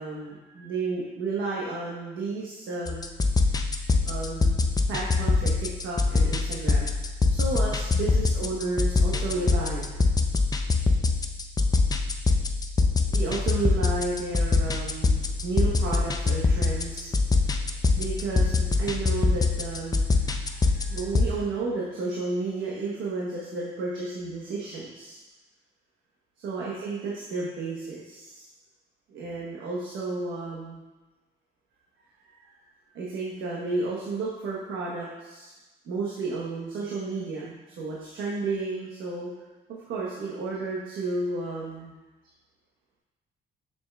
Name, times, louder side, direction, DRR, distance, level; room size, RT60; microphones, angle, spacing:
voice 1, 0.0-3.0 3.6-3.8 4.0-4.6 4.9-6.9 7.3-10.1 13.1-25.2 26.4-28.4 29.1-30.8 32.2-32.5 32.9-35.5 35.8-39.3 39.9-41.9, right 3 dB, 80° right, -5 dB, 1.1 m, -32 dB
sound 1, 2.9-21.3, left 3 dB, 20° left, 0.5 m, -24 dB
7.1 x 6.4 x 2.3 m, 1.1 s
cardioid pair, 90°, 20 cm